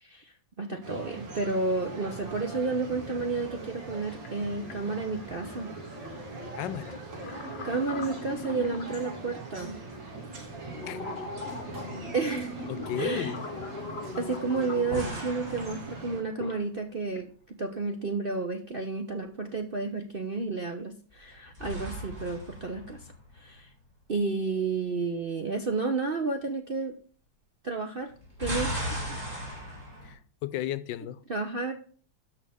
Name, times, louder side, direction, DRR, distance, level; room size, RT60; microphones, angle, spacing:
voice 1, 0.0-5.7 7.6-9.8 12.1-12.6 13.0-13.3 14.2-23.1 23.3-23.7 24.1-26.9 27.6-28.1 28.4-29.2 31.3-31.7, right 3 dB, 50° right, 0.7 m, -31 dB
sound 1, 0.8-16.2, right 2 dB, 70° right, 2.9 m, -41 dB
sound 2, 1.5-1.6 1.8-2.6 4.2-4.3 4.7-9.2 9.7-9.8 10.4-15.3 16.1-16.6 17.0-17.3, left 3 dB, 40° left, 1.0 m, -41 dB
voice 2, 6.5-7.0 10.9-11.0 12.7-13.5 30.0-31.2, left 12 dB, 75° left, 1.2 m, -34 dB
sound 3, 11.4-11.5 14.9-16.6 21.1-23.7 28.1-30.1, equal, 25° right, 4.2 m, -37 dB
13.0 x 5.5 x 3.5 m
omnidirectional pair, 2.1 m